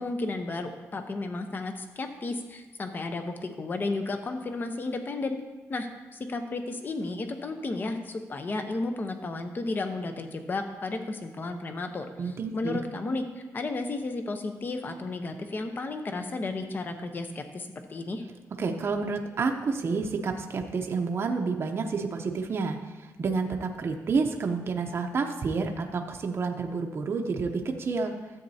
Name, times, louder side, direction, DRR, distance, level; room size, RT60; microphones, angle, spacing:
voice 1, 0.0-5.4 5.7-12.1 12.5-13.2 13.5-18.2, left 3 dB, 35° left, 6 dB, 0.7 m, -33 dB
voice 2, 12.2-12.8 18.6-28.1, right 4 dB, 40° right, 3 dB, 0.7 m, -29 dB
13.5 x 8.0 x 2.8 m, 1.3 s
cardioid pair, 135°, 6 cm